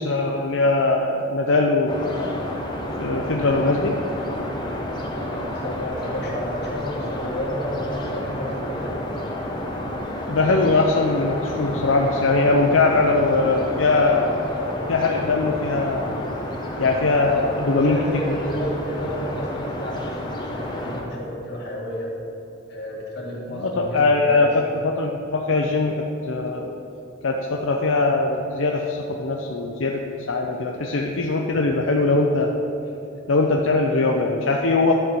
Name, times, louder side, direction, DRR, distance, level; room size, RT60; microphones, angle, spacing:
voice 1, 0.0-2.4 3.0-4.0 10.3-14.4 14.9-16.3 16.8-18.0 18.3-18.4 23.6-24.5 24.8-26.0 26.3-26.8 27.2-30.0 30.3-32.6 33.3-34.9, left 3 dB, 85° left, 1 dB, 0.6 m, -21 dB
sound 1, 1.9-21.0, left 1 dB, 25° left, 1.2 m, -30 dB
voice 2, 5.1-9.0 17.2-17.5 17.8-22.1 22.7-24.5, equal, 60° left, -4 dB, 2.2 m, -31 dB
11.0 x 4.5 x 6.9 m, 3.0 s
head